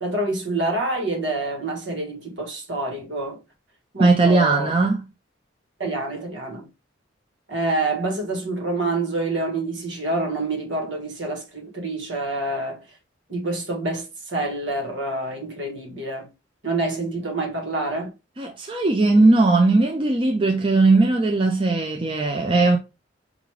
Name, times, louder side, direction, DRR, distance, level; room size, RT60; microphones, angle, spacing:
voice 1, 0.0-3.4 3.9-4.7 5.8-6.7 7.5-12.8 13.3-16.3 16.6-18.1, right 2 dB, 70° right, 1.4 m, -27 dB
voice 2, 4.0-5.1 18.4-22.8, right 3 dB, 25° right, 0.5 m, -18 dB
5.1 x 2.5 x 3.2 m
head